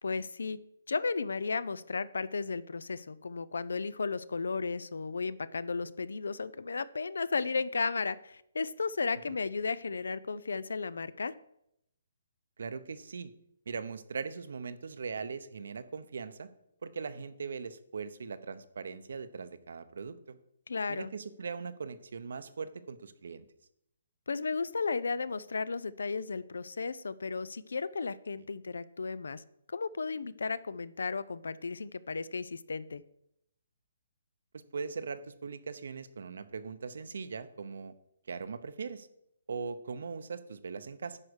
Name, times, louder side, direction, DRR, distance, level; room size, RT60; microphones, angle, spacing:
voice 1, 0.0-0.6 0.9-11.3 20.7-21.1 24.3-29.4 29.7-33.0, left 4 dB, 90° left, 18 dB, 0.5 m, -34 dB
voice 2, 12.6-13.3 13.7-16.5 16.8-20.4 20.9-23.4 34.5-37.9 38.3-39.1 39.5-41.2, right 5 dB, 70° right, 13 dB, 0.8 m, -40 dB
9.9 x 4.8 x 6.4 m, 0.78 s
hypercardioid pair, 165°, 0 cm